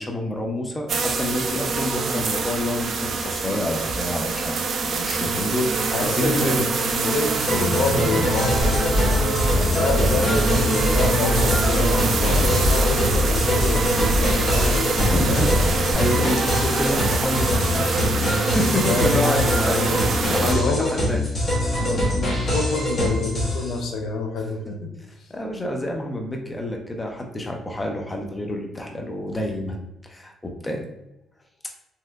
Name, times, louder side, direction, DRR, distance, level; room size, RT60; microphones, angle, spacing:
voice 1, 0.0-6.7 15.0-15.6 15.9-21.3 24.7-24.8 25.3-29.8 30.0-30.8, left 1 dB, 20° left, 1 dB, 0.6 m, -28 dB
sound 1, 0.9-20.5, right 4 dB, 55° right, 0.4 m, -25 dB
voice 2, 5.9-8.9 9.6-15.0 15.3-15.4 16.2-16.3 18.9-19.5 19.9-20.0 20.4-20.9 21.7-24.9, left 3 dB, 70° left, 3 dB, 0.5 m, -28 dB
sound 2, 7.5-23.8, left 1 dB, 35° left, 1.0 m, -24 dB
sound 3, 8.6-15.9, equal, 25° right, 1.5 m, -24 dB
3.1 x 2.8 x 2.4 m, 0.92 s
cardioid pair, 90°, 0 cm